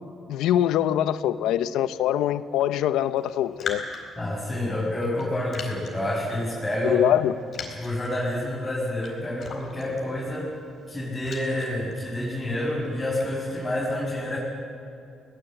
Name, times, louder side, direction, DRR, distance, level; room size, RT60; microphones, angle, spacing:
voice 1, 0.3-3.8 6.8-7.3, left 11 dB, 90° left, 13 dB, 0.7 m, -23 dB
Raindrop, 3.2-13.8, left 5 dB, 50° left, 4.4 m, -42 dB
voice 2, 4.2-7.0 7.7-10.5 10.9-14.4, left 1 dB, 15° left, -7 dB, 6.6 m, -28 dB
21.5 x 19.0 x 7.9 m, 2.5 s
cardioid pair, 90°, 0 cm